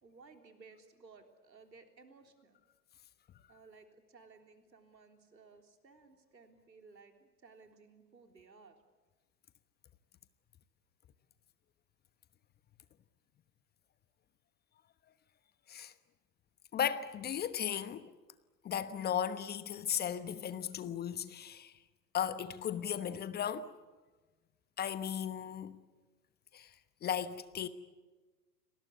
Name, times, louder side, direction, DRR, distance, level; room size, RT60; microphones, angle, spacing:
voice 1, 0.0-2.6 3.5-8.8, right 4 dB, 85° right, 3.7 m, -59 dB
voice 2, 16.7-18.1 18.6-21.7 22.1-23.7 24.8-25.8 26.5-26.7 27.0-27.7, left 9 dB, 20° left, 1.1 m, -36 dB
29.5 x 20.0 x 8.4 m
figure-of-eight pair, 105°, 50 cm